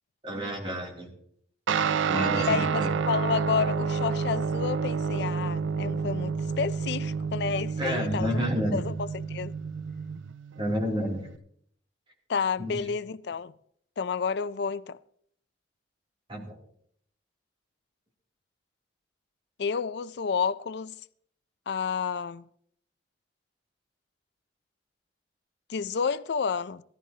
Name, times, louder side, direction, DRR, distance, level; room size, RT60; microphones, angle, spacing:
voice 1, 0.2-1.1 1.7-3.0 7.8-8.8 10.6-11.3 12.6-12.8 16.3-16.6, equal, 30° right, 2.8 m, -30 dB
Guitar, 1.7-11.4, right 5 dB, 90° right, 0.4 m, -29 dB
voice 2, 2.3-8.5 8.7-9.5 12.3-13.5 14.0-15.0 19.6-20.9 21.7-22.4 25.7-26.8, left 6 dB, 60° left, 0.4 m, -30 dB
16.5 x 14.0 x 2.8 m
head